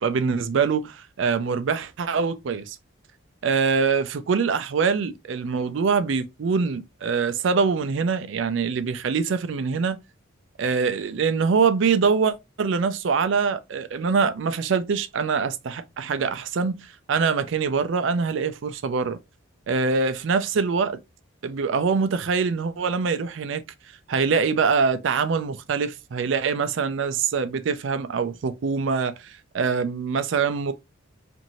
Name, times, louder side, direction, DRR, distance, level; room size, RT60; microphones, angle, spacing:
voice 1, 0.0-2.8 3.4-10.0 10.6-19.2 19.7-21.0 21.4-23.6 24.1-30.7, right 5 dB, 65° right, 0.4 m, -24 dB
3.0 x 2.6 x 2.6 m
head